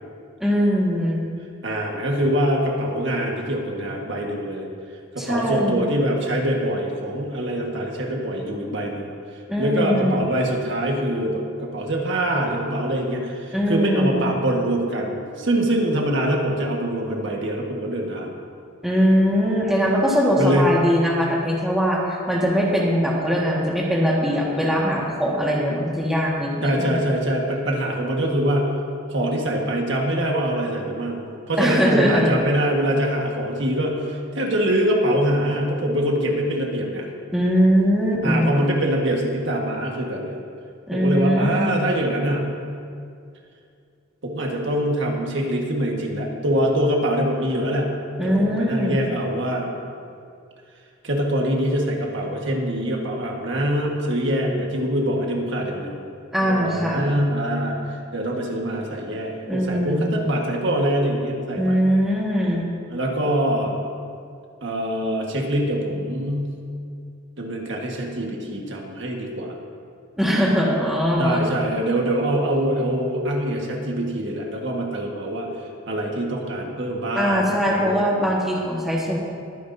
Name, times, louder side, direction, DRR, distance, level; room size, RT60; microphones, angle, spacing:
voice 1, 0.4-1.2 5.2-5.9 9.5-10.2 13.5-14.4 18.8-27.0 31.6-32.3 37.3-38.5 40.9-41.8 48.2-49.0 56.3-57.0 59.5-60.2 61.6-62.6 70.2-71.4 77.1-79.2, equal, ahead, -4 dB, 1.7 m, -21 dB
voice 2, 1.6-4.7 5.1-9.1 9.6-18.3 20.4-20.8 26.6-28.8 29.1-37.1 38.2-40.4 40.9-42.5 44.2-48.0 48.2-49.7 51.0-56.0 56.6-61.8 62.9-63.8 64.6-66.6 67.4-69.5 71.2-75.5 75.9-77.9, right 1 dB, 60° right, 0 dB, 1.6 m, -24 dB
22.0 x 9.9 x 2.7 m, 2.4 s
head